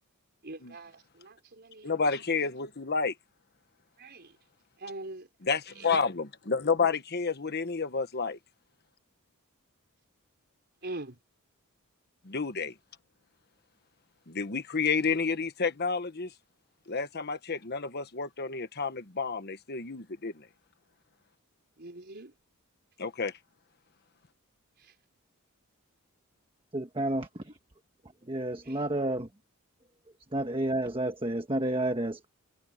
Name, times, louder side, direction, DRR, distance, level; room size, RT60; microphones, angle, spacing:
voice 1, 0.4-2.0 4.0-4.4 4.8-5.3 5.7-5.9 10.8-11.2 21.8-22.3 24.8-24.9 28.6-28.8, right 2 dB, 50° right, 5.2 m, -43 dB
voice 2, 1.8-3.1 5.4-8.4 12.2-12.7 14.3-16.3 16.9-20.5 23.0-23.3, left 5 dB, 50° left, 1.2 m, -30 dB
voice 3, 26.7-27.5 28.3-29.3 30.3-32.3, right 1 dB, 25° right, 1.3 m, -30 dB
head